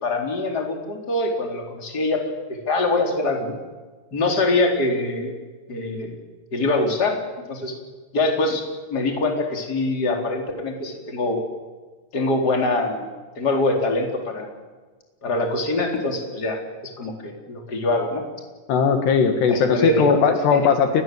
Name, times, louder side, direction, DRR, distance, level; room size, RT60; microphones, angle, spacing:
voice 1, 0.0-2.2 2.5-3.6 4.1-5.4 5.7-6.1 6.5-7.2 7.5-7.7 8.1-8.6 8.9-11.4 12.1-13.1 13.4-14.5 15.2-16.6 17.0-18.2 19.5-20.2 20.5-20.6, left 2 dB, 20° left, 2 dB, 4.0 m, -23 dB
voice 2, 18.7-21.0, left 6 dB, 70° left, 6 dB, 3.7 m, -18 dB
29.0 x 21.5 x 7.9 m, 1.3 s
omnidirectional pair, 5.3 m